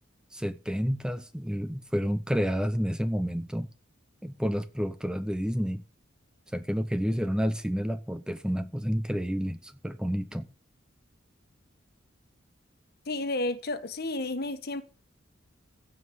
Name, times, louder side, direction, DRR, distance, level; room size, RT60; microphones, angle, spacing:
voice 1, 0.3-3.7 4.2-5.8 6.5-10.5, equal, 5° right, 0.8 m, -30 dB
voice 2, 13.1-14.8, left 2 dB, 55° left, 1.5 m, -31 dB
15.5 x 5.6 x 9.4 m
head